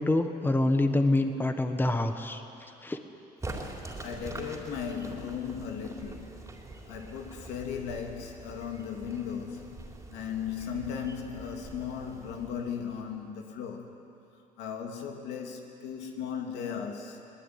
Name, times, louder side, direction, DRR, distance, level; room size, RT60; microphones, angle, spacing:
voice 1, 0.0-3.0, left 2 dB, 10° left, 7 dB, 1.4 m, -26 dB
sound 1, 3.4-13.2, right 2 dB, 15° right, 3.6 m, -44 dB
voice 2, 4.0-6.4 6.9-13.9 14.6-17.2, left 7 dB, 90° left, 3 dB, 2.8 m, -37 dB
22.0 x 20.0 x 9.7 m, 2.7 s
cardioid pair, 110°, 17 cm